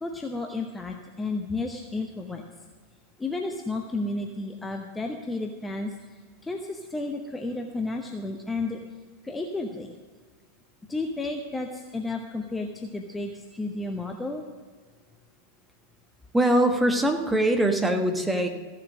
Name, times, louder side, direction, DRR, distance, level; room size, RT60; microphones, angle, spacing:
voice 1, 0.0-2.4 3.2-5.9 6.4-8.8 9.2-9.9 10.9-14.4, left 2 dB, 10° left, 3 dB, 0.9 m, -32 dB
voice 2, 16.3-18.5, right 1 dB, 5° right, 4 dB, 1.3 m, -22 dB
14.5 x 7.4 x 6.2 m, 1.5 s
figure-of-eight pair, 90°, 0 cm